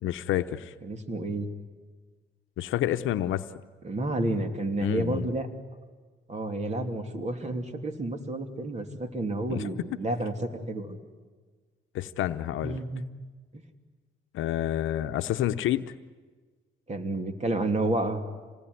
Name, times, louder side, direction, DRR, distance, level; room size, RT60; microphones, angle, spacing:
voice 1, 0.0-0.7 2.6-3.4 4.8-5.3 9.5-9.7 11.9-12.8 14.3-15.9, left 12 dB, 80° left, 10 dB, 0.8 m, -29 dB
voice 2, 0.8-1.5 3.8-5.5 6.3-11.0 12.6-13.0 16.9-18.2, right 2 dB, 35° right, 6 dB, 2.9 m, -30 dB
27.0 x 20.0 x 9.8 m, 1.4 s
cardioid pair, 90°, 20 cm